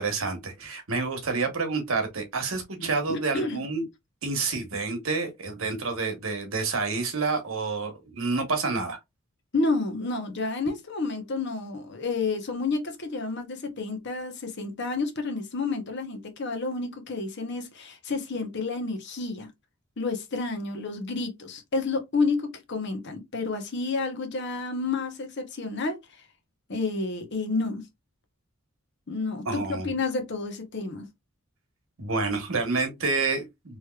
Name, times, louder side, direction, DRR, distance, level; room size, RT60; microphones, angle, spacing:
voice 1, 0.0-3.8 4.2-9.0 29.4-29.9 32.0-33.8, right 4 dB, 75° right, 1.2 m, -28 dB
voice 2, 2.8-3.6 9.5-19.5 20.0-26.0 26.7-27.9 29.1-31.1, left 3 dB, 55° left, 0.9 m, -30 dB
3.2 x 2.9 x 2.3 m
head